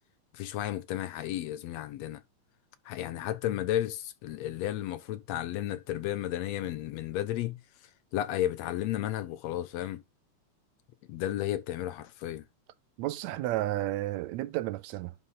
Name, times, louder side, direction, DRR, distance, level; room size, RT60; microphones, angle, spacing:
voice 1, 0.3-2.2 2.9-7.6 8.1-10.0 11.1-12.5, left 13 dB, 70° left, 1.9 m, -33 dB
voice 2, 13.0-15.2, right 15 dB, 75° right, 1.9 m, -32 dB
11.5 x 4.0 x 3.9 m
omnidirectional pair, 3.4 m